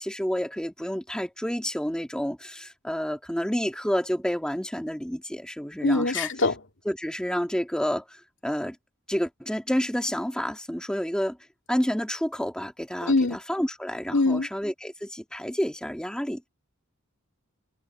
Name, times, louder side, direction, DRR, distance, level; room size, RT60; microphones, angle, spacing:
voice 1, 0.0-6.3 6.9-8.2 8.4-8.8 9.1-11.4 11.7-16.5, equal, 5° left, 2.2 m, -29 dB
voice 2, 5.8-6.6 13.1-13.4 14.1-14.5, left 3 dB, 65° left, 2.4 m, -23 dB
head